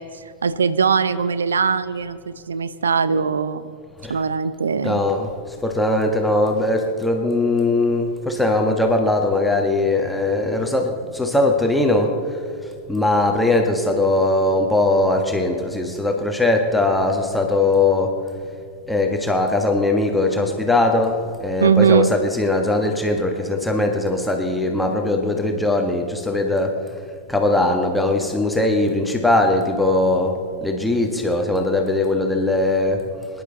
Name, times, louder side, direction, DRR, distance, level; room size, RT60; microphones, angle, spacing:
voice 1, 0.0-3.7 4.1-5.0 21.6-22.1, right 6 dB, 70° right, 15 dB, 0.6 m, -20 dB
voice 2, 4.8-5.3 5.6-12.2 12.9-18.2 18.9-26.8 27.3-33.0, left 2 dB, 5° left, 3 dB, 1.6 m, -20 dB
24.5 x 11.0 x 4.1 m, 2.4 s
figure-of-eight pair, 90°, 0 cm